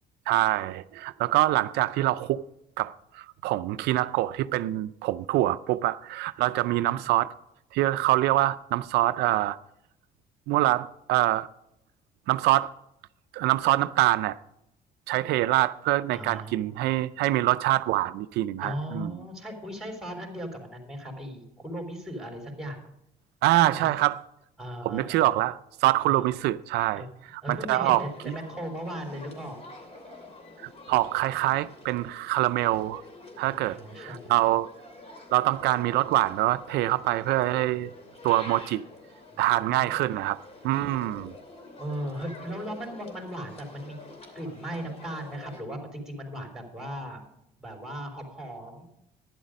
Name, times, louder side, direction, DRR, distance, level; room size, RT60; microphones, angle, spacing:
voice 1, 0.3-2.4 2.8-7.3 7.7-9.6 10.5-11.5 12.3-12.7 13.3-14.4 15.1-19.1 23.4-24.2 24.8-27.0 27.3-28.3 30.9-33.0 33.4-34.7 35.3-37.9 38.2-38.8 39.4-40.4 40.6-41.3, right 16 dB, 80° right, 0.4 m, -25 dB
voice 2, 6.7-7.1 16.1-16.8 18.6-22.8 23.6-23.9 24.6-25.4 26.0-26.3 27.0-27.1 27.4-29.6 33.4-34.5 39.3-39.9 41.8-44.0 44.3-47.2 47.6-48.9, equal, 5° right, 3.7 m, -37 dB
sound 1, 27.8-45.6, left 2 dB, 35° left, 2.8 m, -47 dB
11.5 x 10.5 x 5.2 m
cardioid pair, 110°, 17 cm